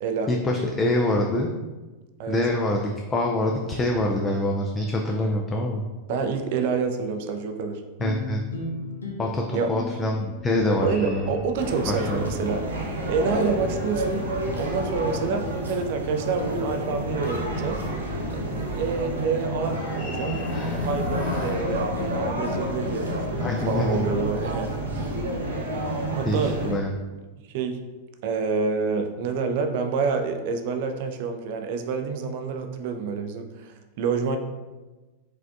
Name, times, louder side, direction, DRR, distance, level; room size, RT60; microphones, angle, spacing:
voice 1, 0.3-1.5 2.3-5.8 8.0-8.4 9.2-11.3 11.9-12.3 23.4-24.0 26.2-26.9, left 1 dB, 20° left, 0 dB, 0.4 m, -25 dB
voice 2, 6.1-7.8 9.5-9.7 10.8-12.6 13.1-14.3 14.5-17.8 18.3-25.1 26.1-26.5 27.5-27.8 28.2-34.4, right 5 dB, 50° right, 6 dB, 0.4 m, -28 dB
sound 1, 8.0-12.6, left 2 dB, 75° left, 0.7 m, -37 dB
sound 2, 10.4-12.4 13.1-15.5 19.6-22.7, left 2 dB, 40° left, 1.1 m, -40 dB
sound 3, 11.5-26.7, equal, 75° right, 0.8 m, -29 dB
4.6 x 3.3 x 2.5 m, 1.2 s
figure-of-eight pair, 90°, 0 cm